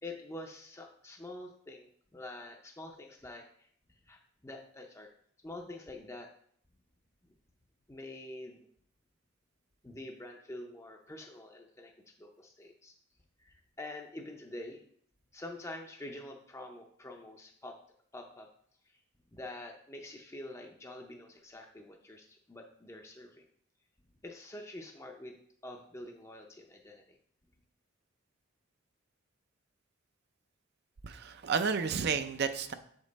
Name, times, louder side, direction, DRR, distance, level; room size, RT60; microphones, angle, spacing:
voice 1, 0.0-5.1 5.4-6.3 7.9-8.6 9.8-11.9 12.2-12.9 13.4-14.8 15.3-17.8 18.1-18.5 18.8-19.0 19.3-23.4 24.2-25.4 25.6-27.2, left 1 dB, 15° left, 2 dB, 0.5 m, -46 dB
voice 2, 31.0-32.7, right 5 dB, 50° right, 9 dB, 0.4 m, -31 dB
7.3 x 5.2 x 4.0 m, 0.62 s
head